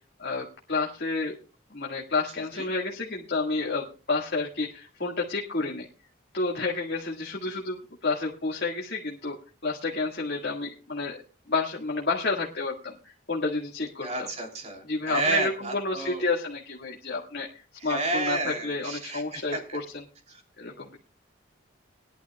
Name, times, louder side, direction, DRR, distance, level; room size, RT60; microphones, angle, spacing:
voice 1, 0.2-1.4 1.7-5.9 6.3-9.4 9.6-11.2 11.5-14.3 14.9-20.0 20.6-21.0, left 3 dB, 55° left, -2 dB, 1.9 m, -30 dB
voice 2, 14.0-16.2 17.8-19.8 20.3-20.4, right 3 dB, 35° right, 2 dB, 3.0 m, -31 dB
21.0 x 11.5 x 2.3 m, 0.34 s
head